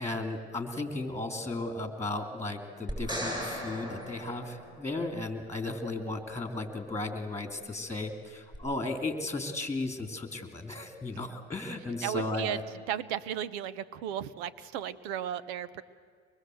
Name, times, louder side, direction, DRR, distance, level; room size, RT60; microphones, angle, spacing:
voice 1, 0.0-12.6, left 2 dB, 10° left, 6 dB, 3.0 m, -35 dB
sound 1, 2.9-5.2 8.5-8.6, equal, 15° right, 7.2 m, -37 dB
voice 2, 12.0-12.6 12.9-15.8, right 10 dB, 80° right, 17 dB, 1.0 m, -35 dB
24.5 x 21.0 x 7.9 m, 2.1 s
supercardioid pair, 100°, 31 cm